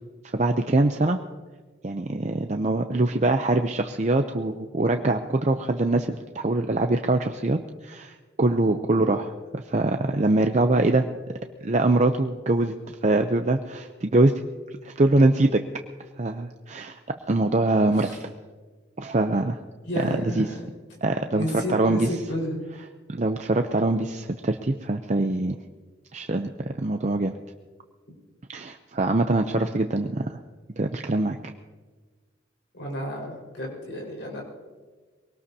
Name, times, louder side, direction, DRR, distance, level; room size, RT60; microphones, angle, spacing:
voice 1, 0.2-1.2 1.8-11.1 11.6-12.8 13.0-14.3 14.8-15.6 16.2-17.0 17.3-18.1 19.0-19.6 20.0-20.5 21.0-22.1 23.1-25.6 26.1-26.5 26.8-27.3 28.5-30.4 30.8-31.4, right 2 dB, 35° right, 6 dB, 0.6 m, -23 dB
voice 2, 17.8-18.2 19.8-20.6 21.3-22.6 32.7-34.4, left 1 dB, 75° left, -2 dB, 4.9 m, -31 dB
23.0 x 18.5 x 2.8 m, 1.4 s
head